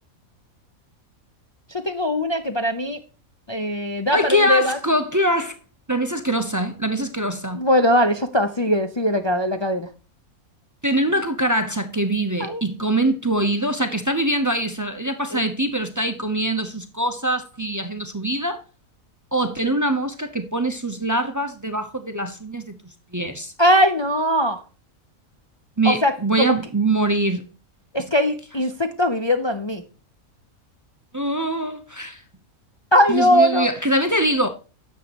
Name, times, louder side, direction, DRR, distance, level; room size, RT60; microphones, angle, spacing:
voice 1, 1.7-3.0 3.5-4.8 7.5-9.9 12.4-12.6 15.3-15.4 23.6-24.6 25.8-26.6 27.9-29.8 32.9-33.7, equal, 45° left, 0.3 m, -20 dB
voice 2, 4.1-5.5 5.9-7.6 10.8-18.6 19.3-22.7 23.1-23.5 25.8-27.4 31.1-32.2 33.1-34.5, right 1 dB, 20° right, 0.5 m, -23 dB
10.5 x 7.2 x 2.9 m
omnidirectional pair, 1.5 m